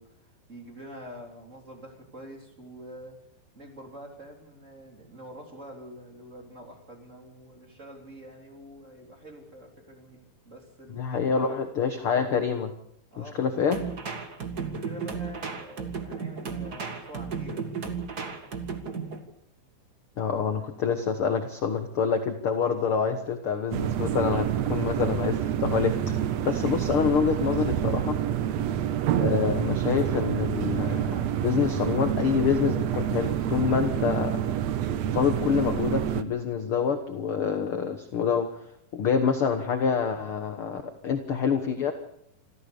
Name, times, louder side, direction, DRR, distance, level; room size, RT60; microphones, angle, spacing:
voice 1, 0.0-3.2 3.5-11.6 13.1-13.6 14.5-17.7, equal, 20° right, 2 dB, 3.6 m, -46 dB
voice 2, 10.9-12.7 13.2-13.8 20.2-28.2 29.2-34.6 35.1-38.5 38.9-41.9, left 6 dB, 65° left, 7 dB, 1.3 m, -27 dB
sound 1, 13.7-19.2, right 5 dB, 35° right, 1.7 m, -34 dB
sound 2, 23.7-36.2, right 10 dB, 75° right, 1.6 m, -28 dB
27.0 x 14.0 x 6.8 m, 0.73 s
omnidirectional pair, 4.4 m